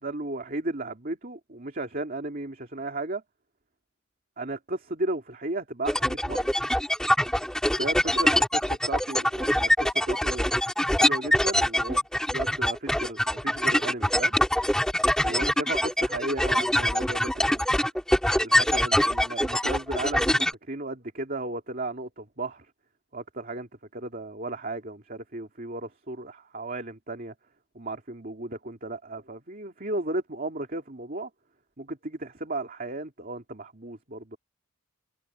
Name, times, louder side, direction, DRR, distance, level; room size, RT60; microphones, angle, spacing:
voice 1, 0.0-3.2 4.4-6.5 7.6-10.5 10.9-14.4 15.2-17.6 18.4-22.7 23.1-27.3 27.7-31.3 31.8-34.4, right 2 dB, 40° right, 2.6 m, -35 dB
sound 1, 5.9-20.5, equal, 5° left, 2.7 m, -24 dB
head